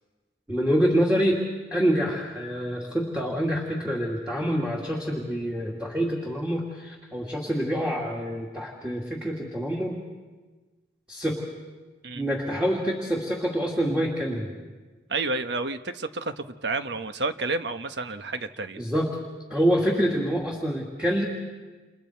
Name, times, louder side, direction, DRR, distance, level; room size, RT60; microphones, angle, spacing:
voice 1, 0.5-10.0 11.1-11.4 12.1-14.5 18.8-19.1 19.5-21.3, equal, 5° right, -3 dB, 2.5 m, -26 dB
voice 2, 12.0-12.4 15.1-18.8, right 3 dB, 80° right, 8 dB, 1.2 m, -30 dB
30.0 x 28.5 x 4.6 m, 1.3 s
head